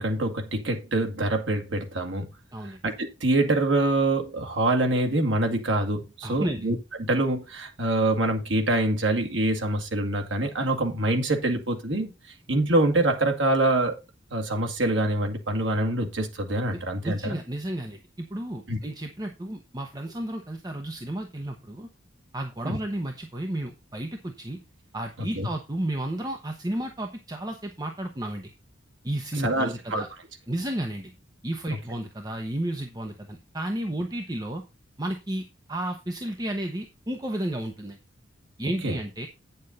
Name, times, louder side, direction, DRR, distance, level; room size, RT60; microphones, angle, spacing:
voice 1, 0.0-2.3 2.8-12.1 12.5-14.0 14.3-17.4 18.7-18.8 22.6-22.8 25.4-25.5 29.4-30.0 31.7-31.8 38.8-39.0, right 2 dB, 80° right, 2.0 m, -25 dB
voice 2, 6.2-6.7 16.7-21.9 22.3-24.6 24.9-28.5 29.0-30.1 30.5-31.1 31.4-34.6 35.0-38.0 38.6-39.3, right 1 dB, 20° right, 1.0 m, -32 dB
9.3 x 6.7 x 4.1 m
head